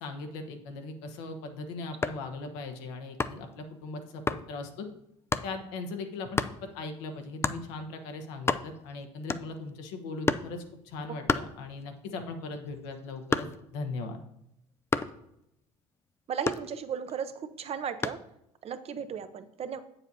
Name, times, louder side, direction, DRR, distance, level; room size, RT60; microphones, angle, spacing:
voice 1, 0.0-4.9 5.4-14.2, left 3 dB, 80° left, 6 dB, 1.0 m, -39 dB
sound 1, 2.0-2.3 3.2-3.5 4.3-4.5 5.3-5.5 6.4-6.6 7.4-7.7 8.1-8.2 8.4-8.9 9.3-9.7 10.3-10.6 11.3-12.0 12.4-13.8 14.9-15.2 16.5-17.1 18.0-18.3, left 4 dB, 15° left, 0.3 m, -30 dB
voice 2, 16.3-18.2 18.6-19.8, right 7 dB, 45° right, 10 dB, 0.7 m, -35 dB
8.0 x 7.1 x 2.8 m, 0.81 s
supercardioid pair, 80°, 15 cm